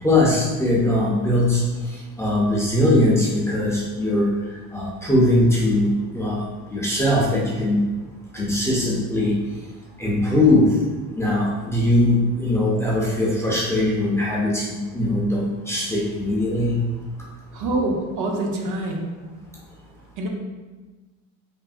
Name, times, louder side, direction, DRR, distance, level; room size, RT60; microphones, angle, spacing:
voice 1, 0.0-1.6 1.9-4.3 4.7-5.9 6.1-6.4 6.7-7.8 8.3-9.3 10.0-10.8 11.2-16.8, left 1 dB, 10° left, -5 dB, 0.4 m, -20 dB
voice 2, 17.5-19.1 20.2-20.3, right 2 dB, 65° right, 1 dB, 0.6 m, -25 dB
3.3 x 2.0 x 2.4 m, 1.3 s
cardioid pair, 125°, 33 cm